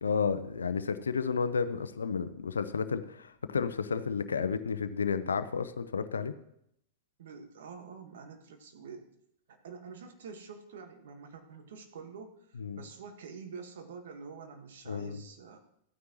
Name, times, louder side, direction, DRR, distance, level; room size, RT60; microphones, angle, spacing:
voice 1, 0.0-6.3 12.6-12.8 14.9-15.2, left 5 dB, 80° left, 11 dB, 0.6 m, -32 dB
voice 2, 7.2-9.1 9.5-15.6, right 5 dB, 65° right, 5 dB, 1.6 m, -47 dB
14.5 x 9.3 x 3.1 m, 0.76 s
hypercardioid pair, 100°, 0 cm